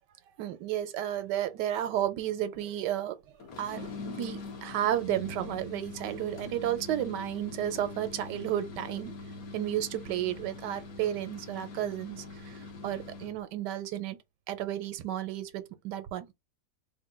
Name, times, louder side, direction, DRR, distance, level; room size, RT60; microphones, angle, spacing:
voice 1, 0.4-3.2 3.6-9.1 9.5-14.2 14.5-16.3, right 12 dB, 85° right, 1.2 m, -32 dB
sound 1, 3.4-13.4, left 3 dB, 60° left, 1.2 m, -43 dB
3.4 x 2.2 x 4.2 m
omnidirectional pair, 1.8 m